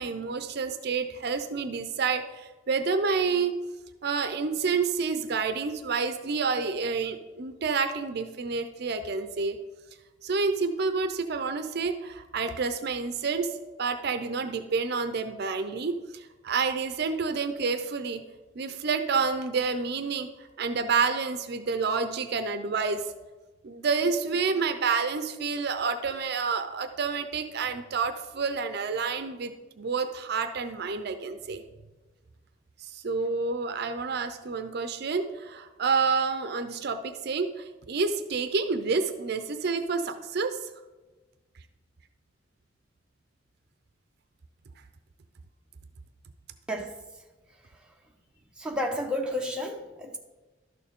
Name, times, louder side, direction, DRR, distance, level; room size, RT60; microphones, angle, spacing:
voice 1, 0.0-3.6 4.0-9.6 10.2-13.5 13.8-18.2 18.6-23.0 23.6-31.6 32.8-40.7, right 4 dB, 55° right, 9 dB, 0.5 m, -29 dB
voice 2, 48.6-50.2, left 1 dB, 5° right, 0 dB, 0.9 m, -32 dB
12.0 x 6.7 x 3.6 m, 1.2 s
head